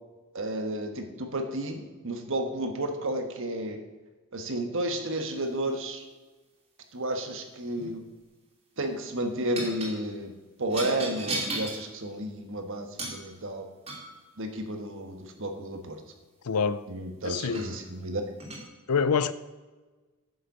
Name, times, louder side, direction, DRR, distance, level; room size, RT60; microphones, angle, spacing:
voice 1, 0.3-3.8 4.3-6.0 6.9-8.0 8.8-10.3 10.6-13.7 14.4-16.0 16.9-18.2, right 1 dB, 60° right, 5 dB, 1.5 m, -32 dB
sound 1, 7.6-8.0 9.6-9.9 10.7-11.8 13.0-13.2 13.9-14.2 16.6-16.7 17.2-17.7 18.4-18.6, right 2 dB, 30° right, 3.0 m, -35 dB
voice 2, 16.4-16.8 17.2-17.6 18.9-19.3, left 6 dB, 90° left, 15 dB, 0.6 m, -25 dB
9.4 x 6.8 x 6.9 m, 1.3 s
head